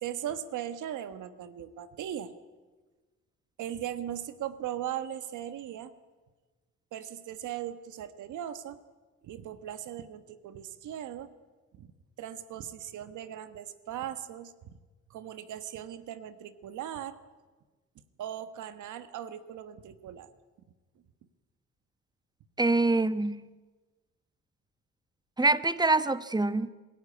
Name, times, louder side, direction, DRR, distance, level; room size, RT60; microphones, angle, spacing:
voice 1, 0.0-2.3 3.6-5.9 6.9-8.8 9.2-11.3 11.7-11.9 12.2-14.7 15.1-17.2 18.2-20.3, right 10 dB, 80° right, 12 dB, 1.4 m, -38 dB
voice 2, 22.6-23.4 25.4-26.7, right 2 dB, 15° right, 14 dB, 1.1 m, -25 dB
26.5 x 16.0 x 9.8 m, 1.3 s
cardioid pair, 90°, 30 cm